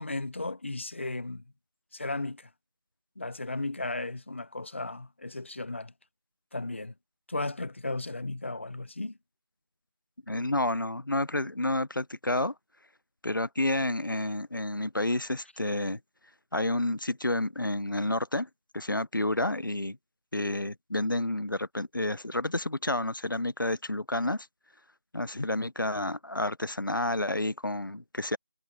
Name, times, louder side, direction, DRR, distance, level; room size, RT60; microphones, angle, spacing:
voice 1, 0.0-1.4 1.9-2.5 3.2-5.9 6.5-6.9 7.3-9.2 25.3-25.5, left 2 dB, 35° left, 1.3 m, -35 dB
voice 2, 10.3-12.5 13.2-16.0 16.5-18.5 18.7-20.0 20.3-24.5 25.1-28.4, left 1 dB, 80° left, 0.9 m, -30 dB
figure-of-eight pair, 170°, 11 cm